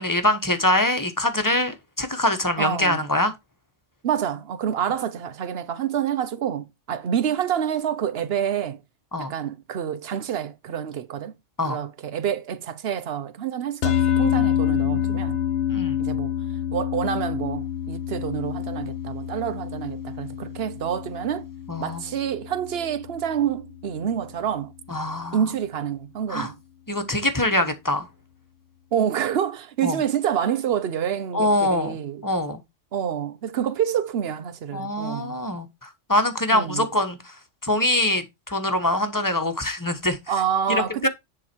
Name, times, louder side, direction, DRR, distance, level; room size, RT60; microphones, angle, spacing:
voice 1, 0.0-3.3 9.1-9.3 11.6-11.8 14.4-14.5 14.8-15.2 15.7-16.0 21.7-22.0 24.9-25.4 26.3-26.5 26.9-28.1 29.8-30.0 31.3-32.0 32.2-32.6 34.7-37.4 37.6-40.2 40.7-41.1, left 1 dB, 15° left, 1.1 m, -24 dB
voice 2, 2.6-3.1 4.0-8.8 9.2-11.3 11.7-15.4 16.0-16.3 16.7-21.5 21.8-24.7 25.3-26.6 28.9-32.2 32.9-35.4 36.5-36.9 40.3-41.1, right 9 dB, 60° right, 1.0 m, -27 dB
sound 1, 13.8-24.3, left 10 dB, 70° left, 1.0 m, -27 dB
10.5 x 3.9 x 4.5 m
omnidirectional pair, 1.3 m